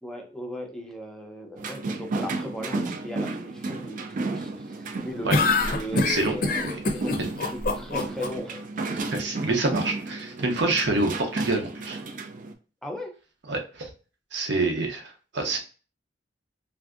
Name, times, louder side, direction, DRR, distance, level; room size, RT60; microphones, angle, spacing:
voice 1, 0.0-7.2 7.5-8.6 12.8-13.2, equal, 5° left, 2 dB, 0.5 m, -37 dB
sound 1, 1.6-12.5, right 3 dB, 45° right, 0.4 m, -33 dB
sound 2, 5.3-8.3, left 3 dB, 50° left, 0.5 m, -24 dB
voice 2, 6.6-6.9 9.1-12.0 13.5-13.9 14.3-15.6, right 2 dB, 70° right, 3 dB, 0.7 m, -27 dB
3.4 x 2.6 x 2.4 m, 0.36 s
head